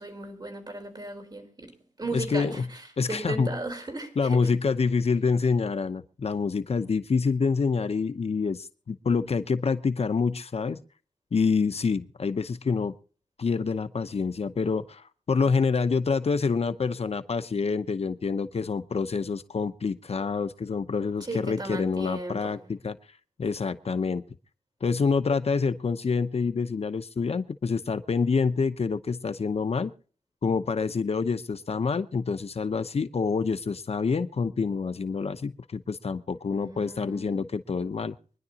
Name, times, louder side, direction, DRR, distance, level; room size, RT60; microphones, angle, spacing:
voice 1, 0.0-1.7 2.0-4.4 21.2-22.7 36.5-37.4, right 2 dB, 35° right, 4 dB, 4.2 m, -36 dB
voice 2, 2.1-2.7 3.0-3.5 4.2-10.8 11.3-13.0 13.4-23.0 23.4-24.2 24.8-29.9 30.4-38.2, left 5 dB, 60° left, 11 dB, 0.8 m, -27 dB
25.0 x 11.0 x 2.9 m, 0.41 s
wide cardioid pair, 95°, 12 cm